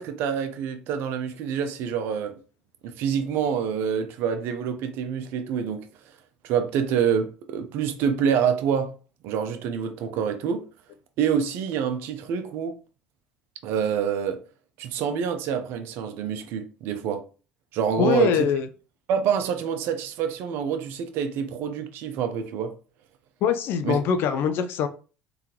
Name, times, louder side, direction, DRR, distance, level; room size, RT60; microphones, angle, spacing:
voice 1, 0.0-2.3 2.8-5.9 6.4-8.9 9.2-10.6 11.2-12.8 13.6-14.4 14.8-17.2 17.7-18.5 19.1-22.7 23.8-24.0, right 7 dB, 70° right, 0.8 m, -26 dB
voice 2, 18.0-18.7 23.4-24.9, left 7 dB, 65° left, 0.7 m, -23 dB
3.7 x 3.5 x 3.0 m
hypercardioid pair, 70°, 4 cm